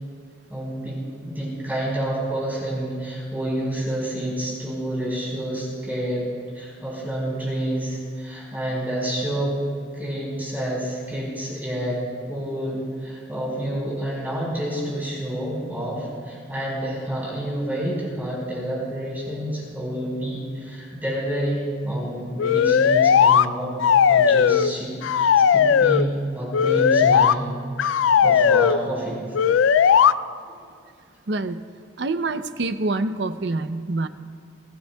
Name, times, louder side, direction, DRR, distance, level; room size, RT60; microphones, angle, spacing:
voice 1, 0.5-6.3 6.5-9.6 9.9-12.0 12.3-23.7 24.1-27.5 28.2-29.2 30.4-30.6, right 1 dB, 10° right, -6 dB, 4.7 m, -28 dB
sound 1, 22.4-23.5 23.8-24.7 25.0-26.1 26.5-27.3 27.8-28.8 29.3-30.1, left 7 dB, 85° left, 0.3 m, -17 dB
voice 2, 31.3-31.7 32.0-34.1, right 2 dB, 60° right, 10 dB, 0.6 m, -26 dB
25.0 x 17.0 x 2.3 m, 2.2 s
head